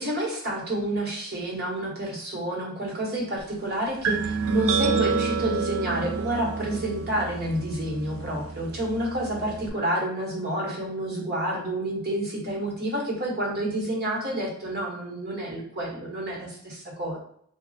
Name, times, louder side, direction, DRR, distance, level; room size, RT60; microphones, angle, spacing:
voice 1, 0.0-17.2, right 1 dB, 50° right, -2 dB, 1.2 m, -29 dB
sound 1, 4.0-9.7, right 5 dB, 80° right, 0.4 m, -29 dB
3.1 x 2.3 x 3.9 m, 0.66 s
head